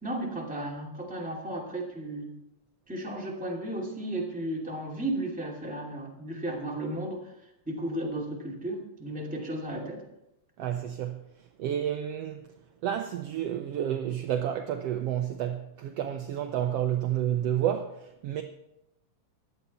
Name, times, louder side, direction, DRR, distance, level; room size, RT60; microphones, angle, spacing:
voice 1, 0.0-2.3 2.9-7.3 7.7-10.0, right 1 dB, 5° right, 2.1 m, -34 dB
voice 2, 10.6-11.2 11.6-12.5 12.8-18.4, right 10 dB, 75° right, 1.5 m, -30 dB
15.5 x 11.0 x 4.2 m
omnidirectional pair, 3.4 m